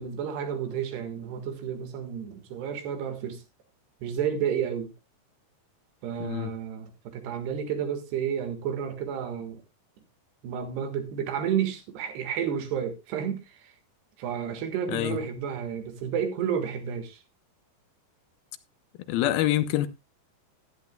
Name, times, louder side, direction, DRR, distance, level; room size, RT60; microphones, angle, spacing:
voice 1, 0.0-3.4 4.0-4.9 6.0-9.6 10.4-13.7 14.2-17.2, right 8 dB, 90° right, 3.8 m, -31 dB
voice 2, 6.2-6.5 14.9-15.2 19.1-19.9, left 14 dB, 80° left, 2.4 m, -26 dB
15.5 x 11.0 x 2.2 m
omnidirectional pair, 4.6 m